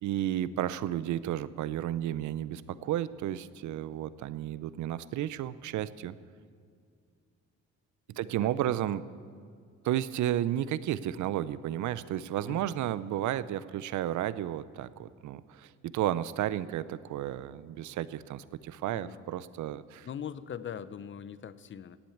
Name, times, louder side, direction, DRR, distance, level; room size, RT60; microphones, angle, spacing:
voice 1, 0.0-6.2 8.1-9.0 9.8-20.1, right 12 dB, 75° right, 16 dB, 0.6 m, -32 dB
voice 2, 8.1-8.5 12.5-12.8 18.9-19.2 20.0-22.0, left 8 dB, 40° left, 15 dB, 0.6 m, -41 dB
13.0 x 8.9 x 8.6 m, 2.2 s
cardioid pair, 90°, 30 cm